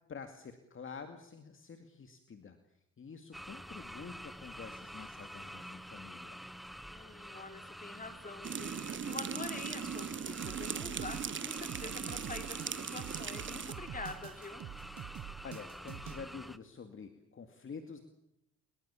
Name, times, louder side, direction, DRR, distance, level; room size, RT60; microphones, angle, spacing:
voice 1, 0.1-6.4 15.4-18.0, left 5 dB, 45° left, 7 dB, 2.3 m, -48 dB
sound 1, 3.3-16.6, equal, ahead, 1.2 m, -48 dB
voice 2, 6.9-14.6, left 3 dB, 25° left, 7 dB, 3.8 m, -46 dB
sound 2, 8.4-13.7, right 7 dB, 40° right, 1.4 m, -39 dB
sound 3, 10.4-16.2, right 11 dB, 70° right, 1.4 m, -46 dB
23.5 x 23.0 x 7.2 m, 0.79 s
cardioid pair, 90°, 30 cm